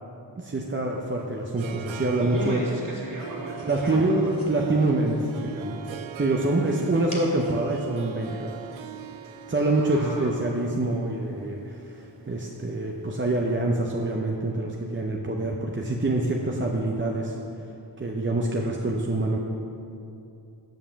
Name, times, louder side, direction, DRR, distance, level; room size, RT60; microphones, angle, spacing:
voice 1, 0.4-2.6 3.6-5.9 6.2-8.5 9.5-17.7 18.0-19.4, right 2 dB, 25° right, -1 dB, 0.7 m, -26 dB
Harp, 0.9-13.1, right 9 dB, 85° right, 0.5 m, -41 dB
sound 1, 2.2-9.5, equal, 20° left, 2.2 m, -50 dB
voice 2, 2.2-4.3 6.4-6.8 9.7-10.5, right 1 dB, 45° right, -4 dB, 2.1 m, -36 dB
7.4 x 5.5 x 6.8 m, 2.7 s
wide cardioid pair, 75°, 46 cm